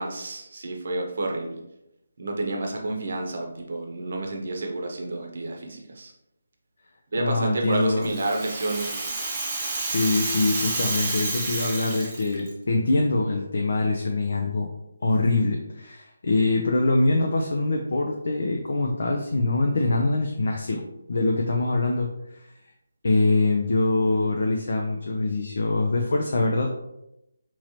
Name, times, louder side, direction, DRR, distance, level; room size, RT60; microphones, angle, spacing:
voice 1, 0.0-1.6 2.2-6.1 7.1-9.2, right 2 dB, 50° right, 2 dB, 0.8 m, -30 dB
voice 2, 7.2-8.1 9.8-14.7 15.0-20.8 21.1-22.5 23.0-26.7, left 2 dB, 55° left, 1 dB, 0.5 m, -24 dB
Rattle (instrument), 7.7-12.5, right 2 dB, 15° right, 0.9 m, -30 dB
4.7 x 3.0 x 2.9 m, 0.87 s
figure-of-eight pair, 150°, 0 cm